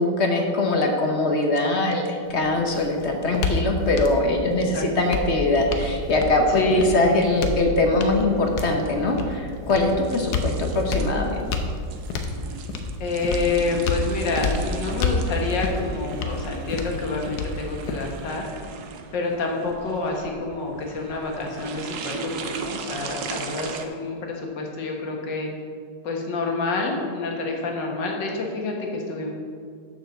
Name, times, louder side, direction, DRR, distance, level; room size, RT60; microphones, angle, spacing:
voice 1, 0.0-11.4, left 2 dB, 50° left, 2 dB, 1.0 m, -22 dB
sound 1, 2.3-18.3, left 3 dB, 65° left, 1.3 m, -29 dB
sound 2, 5.6-23.9, right 5 dB, 70° right, 1.2 m, -38 dB
voice 2, 6.5-7.2 13.0-18.4 19.1-25.5 26.0-29.3, left 3 dB, 85° left, 0 dB, 2.0 m, -27 dB
6.8 x 6.7 x 6.8 m, 2.3 s
omnidirectional pair, 1.9 m